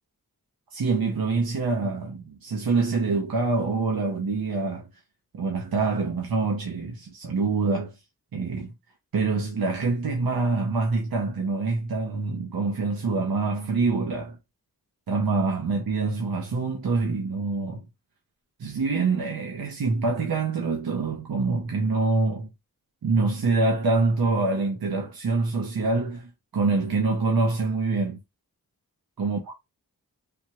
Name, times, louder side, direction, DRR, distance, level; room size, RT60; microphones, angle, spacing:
voice 1, 0.7-4.9 5.3-7.9 8.3-8.7 9.1-14.4 15.1-17.8 18.6-22.5 23.0-28.2 29.2-29.5, right 3 dB, 75° right, 0.8 m, -25 dB
3.4 x 2.2 x 2.9 m
wide cardioid pair, 55°, 36 cm